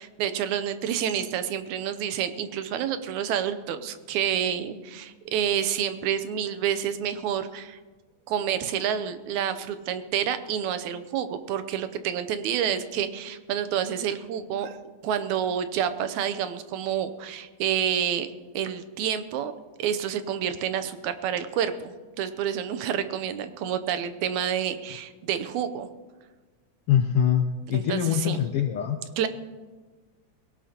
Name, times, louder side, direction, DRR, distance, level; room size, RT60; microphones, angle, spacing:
voice 1, 0.0-7.8 8.3-14.8 15.0-18.3 18.5-19.5 19.8-25.9 27.7-28.4 29.2-29.3, right 9 dB, 80° right, 10 dB, 2.1 m, -28 dB
voice 2, 26.9-29.0, left 9 dB, 75° left, 5 dB, 1.3 m, -24 dB
21.5 x 17.5 x 2.9 m, 1.3 s
omnidirectional pair, 3.3 m